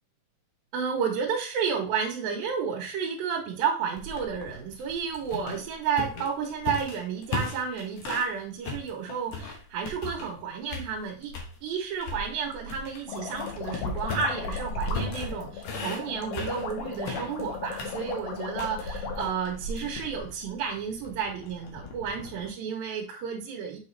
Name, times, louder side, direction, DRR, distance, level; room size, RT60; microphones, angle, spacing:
voice 1, 0.7-11.3 11.6-23.8, right 6 dB, 90° right, -1 dB, 2.8 m, -31 dB
sound 1, 4.0-8.3 8.6-10.4 10.7-11.5 12.0-22.5, left 2 dB, 60° left, 1.9 m, -37 dB
sound 2, 13.1-19.3, left 6 dB, 90° left, 1.2 m, -37 dB
6.9 x 4.9 x 3.2 m, 0.37 s
omnidirectional pair, 4.0 m